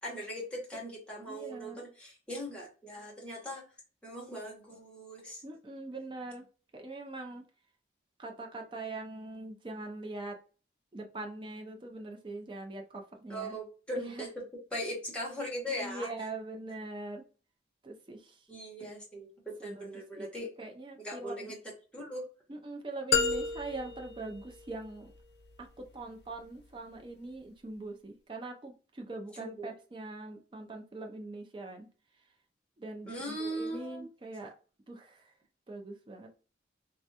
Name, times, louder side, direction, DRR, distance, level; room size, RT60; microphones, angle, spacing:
voice 1, 0.0-3.6 4.0-5.4 13.3-14.4 14.7-16.1 18.5-20.5 21.0-21.6 21.9-22.2 29.4-29.7 33.0-34.1, equal, 5° left, -4 dB, 1.0 m, -39 dB
voice 2, 1.3-1.8 5.4-6.4 6.7-7.4 8.2-10.4 10.9-13.5 14.0-14.2 15.7-17.2 17.8-18.5 19.6-20.3 20.6-21.5 22.5-25.1 25.6-31.9 32.8-34.5 34.9-35.3 35.7-36.3, right 2 dB, 25° right, 2 dB, 0.4 m, -42 dB
sound 1, 23.1-25.2, left 5 dB, 60° left, 0.4 m, -32 dB
3.4 x 2.2 x 2.8 m, 0.37 s
head